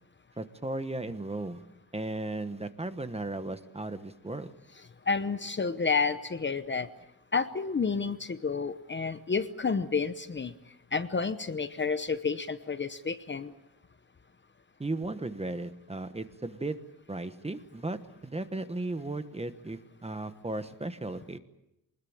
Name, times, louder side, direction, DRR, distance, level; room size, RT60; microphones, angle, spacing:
voice 1, 0.4-1.6 1.9-4.5 14.8-16.8 17.1-21.4, right 2 dB, 15° right, 10 dB, 1.2 m, -36 dB
voice 2, 5.1-6.9 7.3-10.5 10.9-13.5, left 5 dB, 30° left, 11 dB, 0.9 m, -30 dB
23.5 x 20.5 x 8.8 m, 0.87 s
wide cardioid pair, 140°, 39 cm